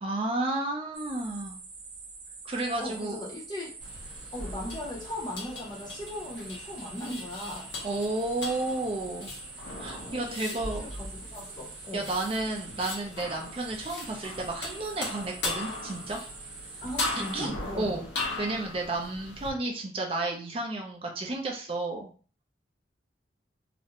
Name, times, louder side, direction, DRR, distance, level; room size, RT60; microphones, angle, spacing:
voice 1, 0.0-1.6 2.4-3.2 7.8-9.3 9.8-10.9 11.9-16.2 17.3-18.1 18.4-22.1, right 2 dB, 30° right, 1 dB, 0.4 m, -32 dB
sound 1, 0.9-17.5, right 4 dB, 65° right, 0.7 m, -46 dB
voice 2, 2.8-3.7 4.3-7.7 10.1-12.1 16.8-18.0, left 1 dB, 25° left, -1 dB, 0.6 m, -38 dB
sound 2, 3.8-19.5, left 2 dB, 75° left, 0.8 m, -38 dB
2.4 x 2.1 x 2.8 m, 0.39 s
head